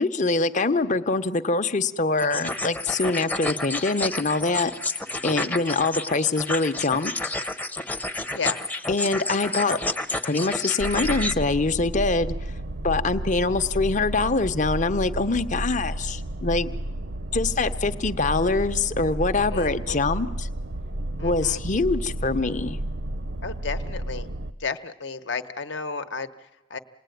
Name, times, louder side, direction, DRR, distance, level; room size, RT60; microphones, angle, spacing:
voice 1, 0.0-4.7 5.2-7.3 8.9-9.8 10.2-12.3 12.8-16.7 17.3-20.5 21.2-22.8, left 3 dB, 40° left, 10 dB, 0.9 m, -24 dB
sound 1, 2.2-11.3, left 2 dB, 10° left, 0.8 m, -30 dB
voice 2, 8.3-8.6 19.5-20.0 21.2-21.6 23.4-24.3 24.6-26.8, left 4 dB, 65° left, 9 dB, 1.1 m, -33 dB
sound 2, 10.8-24.5, right 1 dB, 60° right, 0.8 m, -32 dB
27.5 x 19.5 x 9.3 m, 1.1 s
head